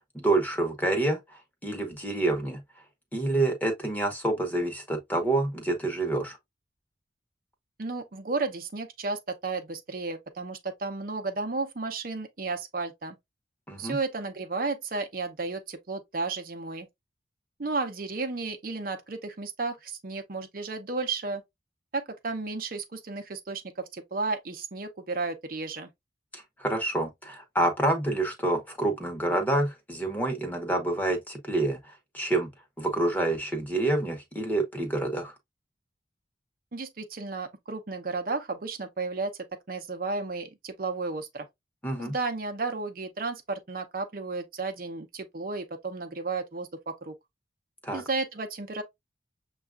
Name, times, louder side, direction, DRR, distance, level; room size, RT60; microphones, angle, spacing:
voice 1, 0.1-2.6 3.1-6.4 13.7-14.0 26.3-32.5 32.8-35.3 41.8-42.1 47.8-48.0, right 2 dB, 10° left, 0.9 m, -28 dB
voice 2, 7.8-13.2 13.8-16.9 17.6-21.4 21.9-25.9 36.7-39.4 39.7-41.5 42.0-47.1 47.9-48.8, right 3 dB, 55° right, 0.7 m, -33 dB
6.7 x 2.4 x 2.4 m
head